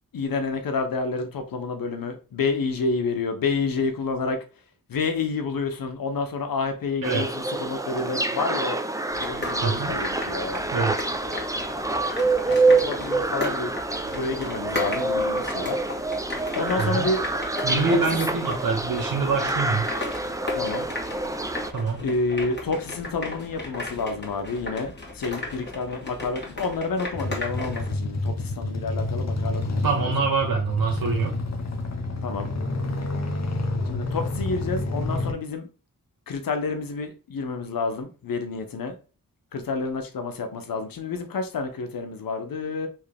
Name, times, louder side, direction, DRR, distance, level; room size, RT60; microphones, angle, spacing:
voice 1, 0.1-4.4 4.9-8.8 9.2-10.6 12.4-13.7 14.0-15.8 16.5-17.2 17.8-18.0 20.5-20.9 22.0-30.3 32.2-32.5 33.9-35.7 36.3-39.0 39.5-42.9, left 4 dB, 90° left, 1.0 m, -29 dB
sound 1, 7.0-21.7, right 2 dB, 10° right, 0.6 m, -27 dB
sound 2, 9.1-27.9, left 2 dB, 30° left, 2.2 m, -36 dB
voice 2, 9.6-9.9 10.7-10.9 16.8-17.1 17.6-19.9 21.7-22.1 29.8-31.4, right 4 dB, 75° right, 1.1 m, -25 dB
sound 3, 27.1-35.3, left 2 dB, 50° left, 1.2 m, -29 dB
4.6 x 3.3 x 3.4 m
cardioid pair, 55°, 34 cm